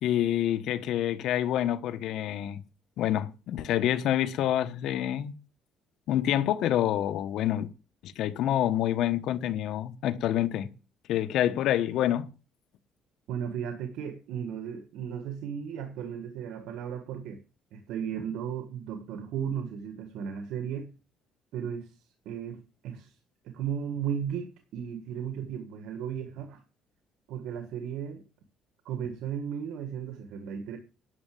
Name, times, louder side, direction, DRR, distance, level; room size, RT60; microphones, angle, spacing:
voice 1, 0.0-2.6 3.0-5.3 6.1-7.7 8.0-10.7 11.1-12.3, left 12 dB, 70° left, 1.3 m, -27 dB
voice 2, 13.3-17.4 17.7-20.9 21.5-22.0 22.2-23.1 23.4-26.6 27.3-28.2 28.8-30.8, right 8 dB, 80° right, 1.6 m, -35 dB
11.0 x 6.8 x 8.5 m
cardioid pair, 120°, 0 cm